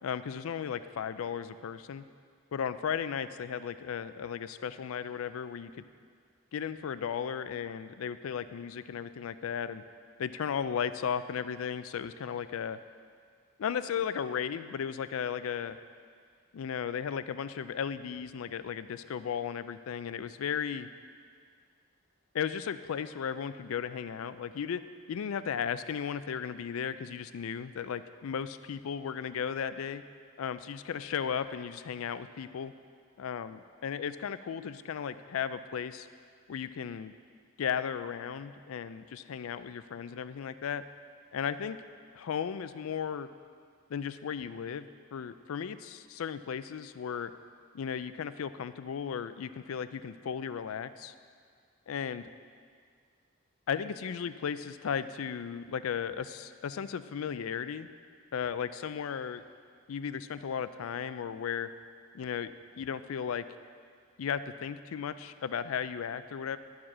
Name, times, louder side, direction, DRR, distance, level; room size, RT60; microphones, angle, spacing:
voice 1, 0.0-2.0 2.5-5.8 6.5-9.8 10.2-12.8 13.6-15.8 16.5-20.9 22.3-24.8 25.1-30.0 30.4-32.7 33.2-36.1 36.5-37.1 37.6-40.8 41.3-41.8 42.1-43.3 43.9-44.9 45.1-47.3 47.7-51.1 51.9-52.3 53.7-57.9 58.3-59.4 59.9-61.7 62.1-62.5 62.8-63.4 64.2-66.6, left 7 dB, 80° left, 13 dB, 0.4 m, -35 dB
11.5 x 4.9 x 6.1 m, 2.1 s
head